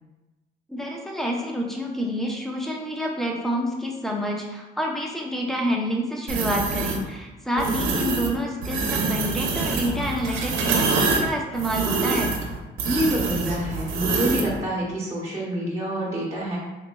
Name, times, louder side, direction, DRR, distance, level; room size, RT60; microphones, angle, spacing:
voice 1, 0.7-12.3, equal, ahead, 0 dB, 0.7 m, -28 dB
sound 1, 6.3-7.0 7.6-8.3 8.6-14.5, right 4 dB, 90° right, 0.6 m, -25 dB
voice 2, 7.5-8.0 12.8-16.6, right 1 dB, 15° right, -6 dB, 1.1 m, -27 dB
4.0 x 3.0 x 2.2 m, 1.1 s
cardioid pair, 90°, 20 cm